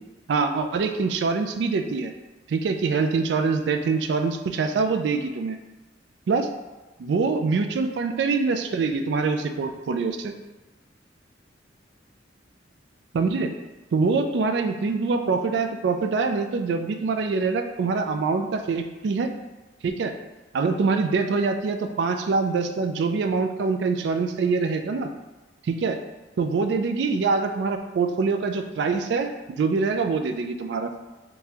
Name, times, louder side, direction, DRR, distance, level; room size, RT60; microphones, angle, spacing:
voice 1, 0.3-2.1 2.5-5.6 6.3-6.5 7.0-10.3 13.1-13.5 13.9-19.3 19.8-20.1 20.5-25.1 25.7-26.0 26.4-30.9, right 4 dB, 65° right, 7 dB, 0.3 m, -24 dB
3.7 x 2.7 x 2.9 m, 1.1 s
head